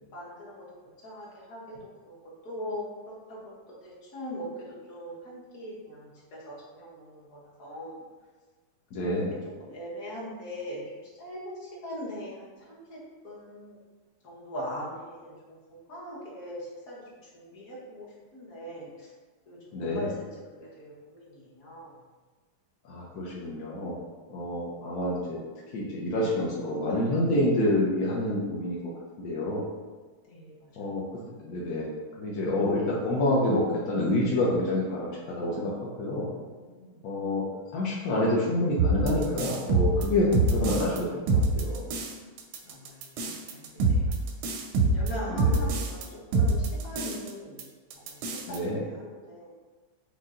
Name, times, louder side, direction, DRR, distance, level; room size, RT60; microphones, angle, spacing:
voice 1, 0.1-0.6 1.0-1.8 2.0-2.1 2.4-2.8 3.3-3.4 3.8-8.0 9.0-9.2 9.6-13.8 14.2-18.1 18.3-19.1 19.5-20.1 20.5-22.0 30.3-31.1 36.5-37.0 42.6-44.1 44.9-47.7 47.9-48.2 48.5-49.5, equal, 50° left, -6 dB, 1.4 m, -41 dB
voice 2, 8.9-9.3 19.7-20.1 22.9-24.0 24.3-25.4 25.7-28.8 29.2-29.7 30.8-31.0 31.4-35.7 36.0-36.3 37.0-37.4 37.7-41.9 45.3-45.6 48.5-48.8, left 1 dB, 70° left, -5 dB, 0.9 m, -28 dB
sound 1, 38.8-41.0 41.3-42.1 42.4-46.0 46.3-47.3 47.6-47.7 47.9-48.6, right 2 dB, 80° right, 1.4 m, -25 dB
5.5 x 2.2 x 3.6 m, 1.4 s
omnidirectional pair, 2.2 m